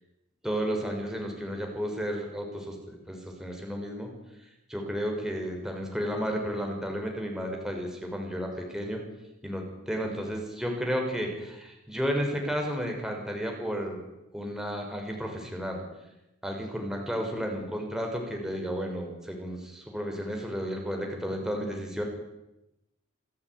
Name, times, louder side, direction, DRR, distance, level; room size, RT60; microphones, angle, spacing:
voice 1, 0.4-4.1 4.7-9.0 9.4-14.0 14.3-15.8 16.4-22.0, equal, 5° right, 1 dB, 6.3 m, -32 dB
27.5 x 17.5 x 9.8 m, 0.92 s
head